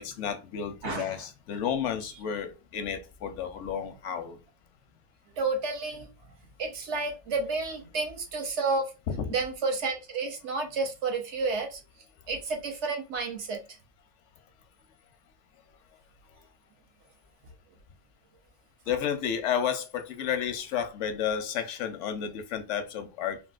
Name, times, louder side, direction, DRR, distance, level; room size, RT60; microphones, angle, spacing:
voice 1, 0.0-4.4 9.1-9.3 18.9-23.4, left 8 dB, 85° left, 0.9 m, -31 dB
voice 2, 0.8-1.3 5.4-6.1 6.6-8.9 9.3-11.8 12.3-13.6 18.9-19.0, right 3 dB, 75° right, 1.1 m, -31 dB
3.5 x 2.4 x 2.4 m
omnidirectional pair, 1.2 m